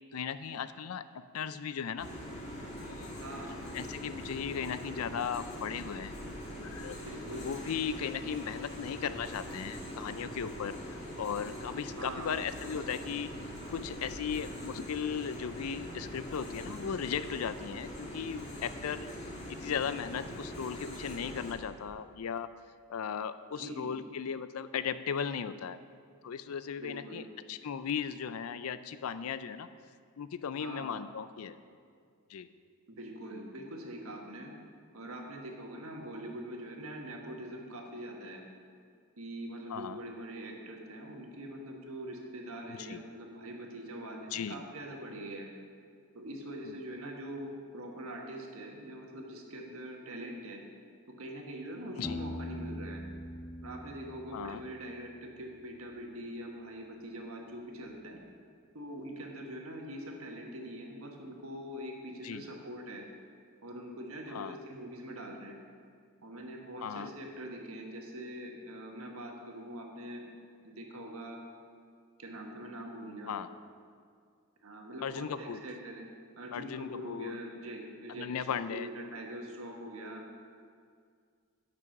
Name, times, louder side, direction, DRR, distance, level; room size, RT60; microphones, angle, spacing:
voice 1, 0.1-1.0 1.3-2.1 2.8-3.1 3.7-6.2 6.5-7.0 7.4-13.3 13.7-19.1 19.5-22.5 22.9-25.8 26.2-29.7 30.2-31.6 32.3-32.5 39.7-40.0 42.8-43.0 44.3-44.6 46.6-46.8 52.0-52.2 54.3-54.6 62.2-62.5 64.3-64.6 66.8-67.1 73.3-73.5 75.0-75.6 76.5-77.4 78.1-78.9, left 7 dB, 85° left, 13 dB, 0.4 m, -37 dB
sound 1, 2.0-21.5, equal, 30° left, 1.8 m, -42 dB
voice 2, 3.2-3.5 7.0-7.5 12.0-12.4 23.5-24.0 26.8-27.2 30.6-31.0 32.9-34.5 34.9-38.4 39.2-45.5 46.1-50.6 51.2-53.0 53.6-58.2 58.7-63.0 63.6-65.6 66.2-70.2 70.6-71.4 72.2-73.3 74.6-76.1 76.4-80.2, right 1 dB, 80° right, 1 dB, 1.4 m, -43 dB
Piano, 52.0-55.7, equal, 5° left, 0.6 m, -42 dB
9.2 x 6.1 x 5.9 m, 2.2 s
head